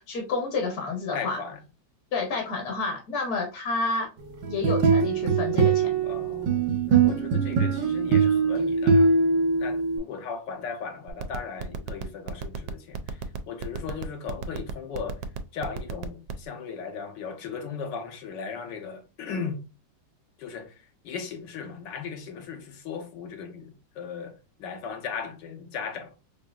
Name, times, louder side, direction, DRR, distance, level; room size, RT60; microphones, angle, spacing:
voice 1, 0.0-1.4 2.1-4.1 4.5-5.9, left 3 dB, 60° left, 1.3 m, -29 dB
voice 2, 1.1-1.6 6.0-9.2 9.6-15.2 15.5-19.6 20.4-26.2, left 6 dB, 75° left, 1.4 m, -37 dB
sound 1, 4.4-10.0, right 5 dB, 70° right, 1.4 m, -22 dB
sound 2, 11.1-16.5, right 8 dB, 90° right, 1.3 m, -33 dB
5.0 x 2.7 x 2.3 m
omnidirectional pair, 2.0 m